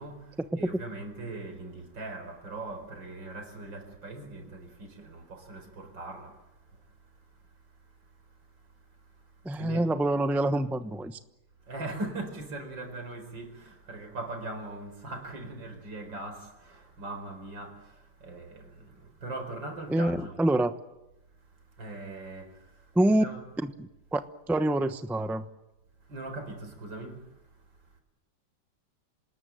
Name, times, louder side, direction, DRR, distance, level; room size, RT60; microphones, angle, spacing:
voice 1, 0.0-6.4 9.6-9.9 11.7-20.4 21.8-22.7 23.1-23.4 26.1-27.3, right 2 dB, 85° right, 5.3 m, -40 dB
voice 2, 9.4-11.2 19.9-20.7 22.9-23.2 23.6-24.2 24.5-25.5, right 1 dB, ahead, 0.6 m, -26 dB
27.0 x 19.5 x 9.1 m
omnidirectional pair, 2.0 m